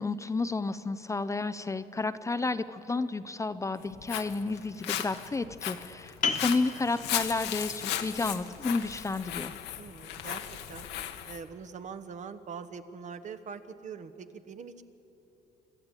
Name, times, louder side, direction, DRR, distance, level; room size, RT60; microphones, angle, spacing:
voice 1, 0.0-9.5, left 3 dB, 20° left, 11 dB, 0.6 m, -31 dB
Walk footsteps, 3.8-11.4, left 11 dB, 80° left, 1.3 m, -36 dB
sound 1, 6.2-11.6, left 5 dB, 55° left, 1.6 m, -39 dB
voice 2, 9.8-10.4 10.7-10.9 11.2-14.8, right 6 dB, 45° right, 10 dB, 1.2 m, -43 dB
25.5 x 12.5 x 8.9 m, 3.0 s
cardioid pair, 110°, 17 cm